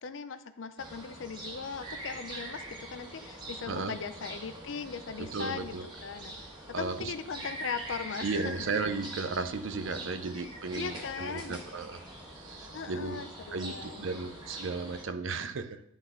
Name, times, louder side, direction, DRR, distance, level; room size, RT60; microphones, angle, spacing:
voice 1, 0.0-5.7 6.0-6.4 6.8-8.7 10.7-11.7 12.7-14.2, left 5 dB, 70° left, 11 dB, 0.5 m, -39 dB
sound 1, 0.8-15.0, right 1 dB, 20° right, 1.5 m, -43 dB
voice 2, 5.2-5.9 6.7-7.1 8.2-12.0 12.3-13.3 13.5-15.8, right 4 dB, 75° right, 10 dB, 0.6 m, -35 dB
10.5 x 4.0 x 3.8 m, 0.72 s
head